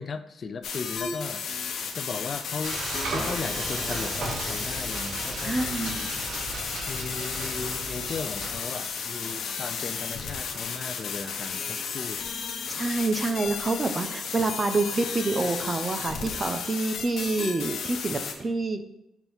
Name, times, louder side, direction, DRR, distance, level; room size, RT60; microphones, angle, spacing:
voice 1, 0.0-1.4 1.9-2.8 3.1-6.1 6.9-12.3, left 5 dB, 45° left, 10 dB, 0.4 m, -36 dB
sound 1, 0.6-18.3, left 6 dB, 70° left, 0.9 m, -34 dB
Frying (food), 2.6-10.6, right 2 dB, 65° right, 1.8 m, -37 dB
Sliding door, 2.7-8.6, right 1 dB, 15° right, 1.9 m, -41 dB
voice 2, 5.4-6.0 12.8-18.8, right 3 dB, 30° right, 8 dB, 0.6 m, -27 dB
6.9 x 2.9 x 5.6 m, 0.84 s
cardioid pair, 90°, 0 cm